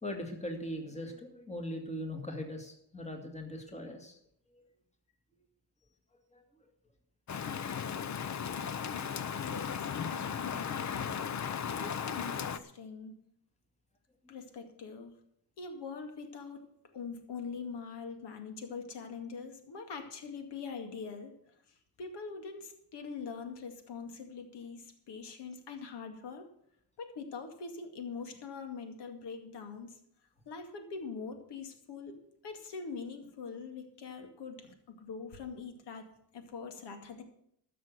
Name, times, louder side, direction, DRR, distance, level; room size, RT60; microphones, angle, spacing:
voice 1, 0.0-4.2 4.5-4.6 6.3-6.4, left 1 dB, 15° left, 3 dB, 2.3 m, -40 dB
Rain, 7.3-12.6, left 7 dB, 45° left, 0.8 m, -36 dB
voice 2, 9.3-11.1 11.7-13.1 14.3-15.1 15.6-16.6 16.9-21.4 22.0-26.5 27.0-30.0 30.5-32.2 32.4-36.1 36.3-37.2, left 5 dB, 80° left, 6 dB, 2.3 m, -43 dB
13.0 x 6.7 x 8.0 m, 0.70 s
cardioid pair, 100°, 40 cm